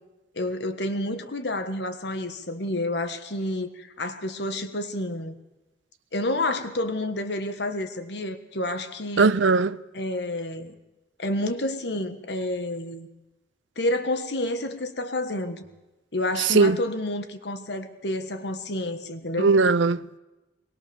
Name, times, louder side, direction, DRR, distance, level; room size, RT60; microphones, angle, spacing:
voice 1, 0.3-5.3 6.1-9.3 9.9-10.7 11.2-13.1 13.8-15.6 16.1-19.5, left 1 dB, 65° left, 1.5 m, -29 dB
voice 2, 9.2-9.8 16.4-16.8 19.4-20.2, right 4 dB, 90° right, 0.7 m, -19 dB
22.0 x 20.0 x 7.1 m
head